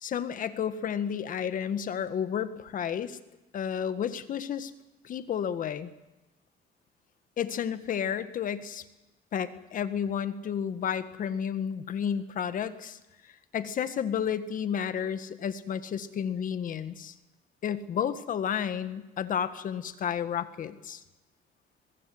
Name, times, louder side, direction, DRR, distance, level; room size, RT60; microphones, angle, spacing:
voice 1, 0.0-3.2 3.5-4.7 5.0-5.9 7.4-8.8 9.3-13.0 13.5-17.1 17.6-21.0, left 8 dB, 50° left, 11 dB, 1.8 m, -31 dB
24.0 x 21.5 x 8.0 m, 1.0 s
cardioid pair, 110°, 17 cm